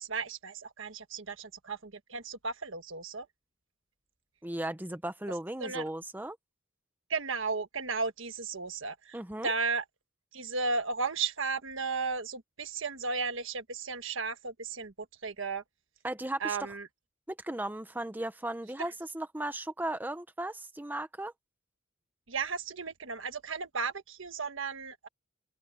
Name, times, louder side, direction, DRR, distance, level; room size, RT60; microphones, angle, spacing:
voice 1, 0.0-3.3 5.6-5.8 7.1-9.8 10.3-14.9 15.2-15.6 16.4-16.9 18.8-18.9 22.3-25.1, right 4 dB, 65° right, 1.5 m, -34 dB
voice 2, 4.4-6.4 9.1-9.5 16.0-16.6 17.3-21.3, right 1 dB, 10° right, 0.8 m, -36 dB
open air
head